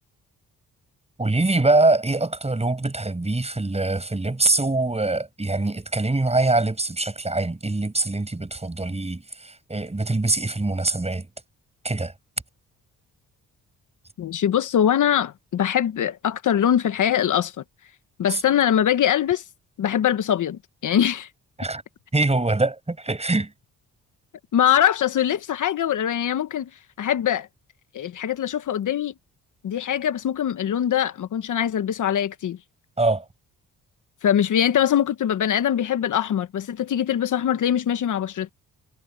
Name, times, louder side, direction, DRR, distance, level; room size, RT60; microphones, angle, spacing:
voice 1, 1.2-11.3 11.8-12.1 18.3-18.4 21.6-21.8 22.1-23.5 33.0-33.2, right 2 dB, 20° right, 6.6 m, -23 dB
voice 2, 14.2-17.6 18.2-19.4 19.8-21.3 24.5-26.7 27.0-27.5 27.9-29.1 29.6-32.6 34.2-38.5, left 10 dB, 65° left, 1.3 m, -22 dB
cardioid pair, 70°, 34 cm